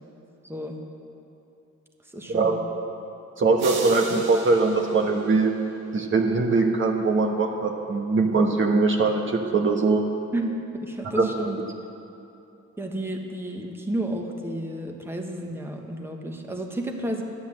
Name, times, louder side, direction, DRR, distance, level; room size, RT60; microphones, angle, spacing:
voice 1, 0.4-0.7 2.1-2.6 10.3-11.6 12.8-17.2, right 1 dB, 10° right, 2 dB, 1.4 m, -31 dB
voice 2, 3.4-5.5 5.9-10.0 11.2-11.4, right 3 dB, 40° right, 2 dB, 1.3 m, -22 dB
sound 1, 3.6-5.9, right 4 dB, 85° right, 1.7 m, -37 dB
11.5 x 9.6 x 7.6 m, 2.8 s
cardioid pair, 90°, 30 cm